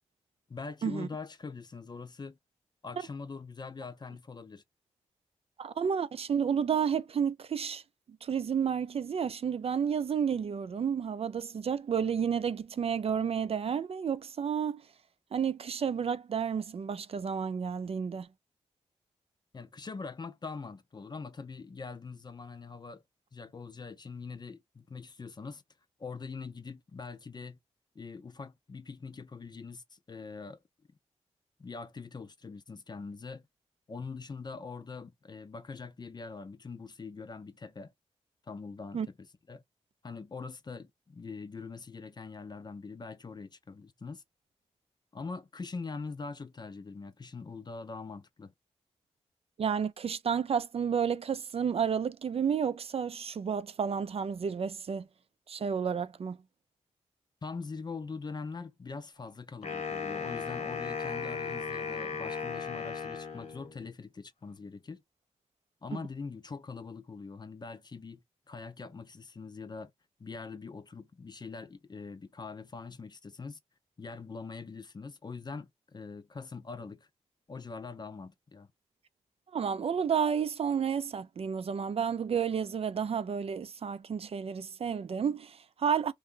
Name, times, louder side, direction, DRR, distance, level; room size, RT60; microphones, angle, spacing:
voice 1, 0.5-2.4 2.8-4.6 19.5-23.0 23.3-25.6 26.0-27.6 28.0-30.6 31.6-33.5 33.9-37.9 38.5-39.6 40.0-44.2 45.1-48.5 57.4-65.0 65.8-68.2 68.5-69.9 70.2-73.6 74.0-77.1 77.5-78.7, left 4 dB, 35° left, 0.5 m, -43 dB
voice 2, 5.6-7.8 8.2-14.8 15.3-18.3 38.9-39.1 49.6-55.1 55.5-56.4 65.9-66.0 79.5-86.1, right 7 dB, 55° right, 0.4 m, -31 dB
Wind instrument woodwind instrument, 59.6-63.9, left 5 dB, 70° left, 1.1 m, -36 dB
2.7 x 2.2 x 3.7 m
cardioid pair, 55°, 12 cm